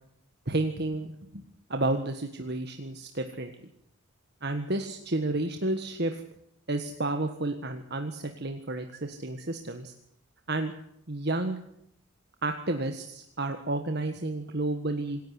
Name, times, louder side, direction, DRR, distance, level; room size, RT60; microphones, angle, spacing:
voice 1, 0.5-1.4 1.7-3.5 4.4-6.2 6.7-9.9 10.5-10.7 11.1-11.6 12.4-15.2, right 2 dB, 50° right, 6 dB, 1.6 m, -31 dB
26.5 x 11.5 x 9.6 m, 0.74 s
head